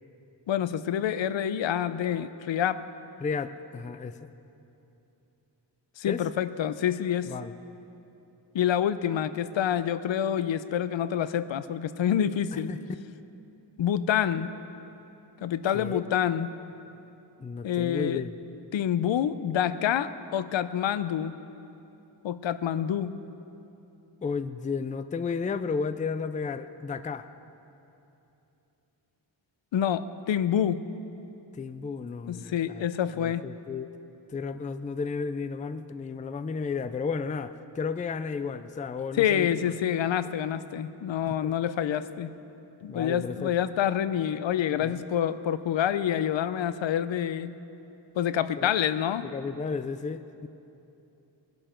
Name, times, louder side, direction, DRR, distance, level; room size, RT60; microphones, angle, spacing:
voice 1, 0.5-2.8 6.0-7.3 8.5-12.7 13.8-14.5 15.4-16.5 17.6-18.2 18.7-21.4 22.2-23.1 29.7-30.8 32.3-33.5 39.2-42.3 42.8-47.5 48.2-49.3, left 9 dB, 85° left, 14 dB, 0.6 m, -27 dB
voice 2, 3.2-4.3 6.1-6.2 7.3-7.5 12.5-13.0 15.7-16.0 17.4-18.3 24.2-27.3 31.5-32.9 33.1-33.9 34.3-39.7 41.3-41.5 42.9-43.5 44.8-45.0 48.6-48.7 49.2-50.5, left 5 dB, 20° left, 12 dB, 0.3 m, -33 dB
21.5 x 11.5 x 4.4 m, 2.9 s
wide cardioid pair, 155°, 44 cm